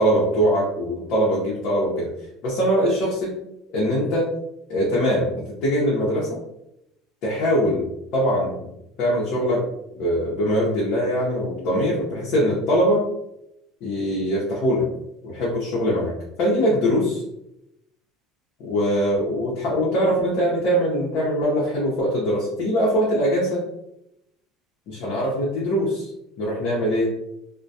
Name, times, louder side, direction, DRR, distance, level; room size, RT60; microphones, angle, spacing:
voice 1, 0.0-2.1 2.4-3.3 3.7-4.3 4.7-5.3 5.6-6.3 7.2-8.7 9.0-9.6 10.0-13.0 13.8-14.8 15.2-16.1 16.4-17.2 18.6-23.6 24.9-26.1 26.4-27.1, equal, 60° left, -6 dB, 0.7 m, -22 dB
2.2 x 2.1 x 2.6 m, 0.83 s
supercardioid pair, 125°, 0 cm